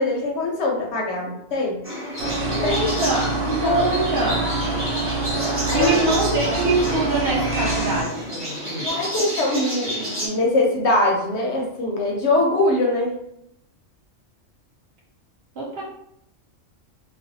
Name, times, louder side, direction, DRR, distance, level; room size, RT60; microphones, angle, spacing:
voice 1, 0.0-1.8 2.6-2.7 3.5-3.9 5.7-5.9 8.8-13.2, left 2 dB, 65° left, -1 dB, 0.8 m, -22 dB
sound 1, 1.8-10.3, equal, 10° right, 0.8 m, -29 dB
sound 2, 2.2-8.0, right 3 dB, 85° right, 1.0 m, -26 dB
voice 2, 2.5-4.5 5.5-8.9 15.6-15.8, right 2 dB, 60° right, -3 dB, 0.7 m, -24 dB
2.4 x 2.1 x 2.6 m, 0.76 s
omnidirectional pair, 1.3 m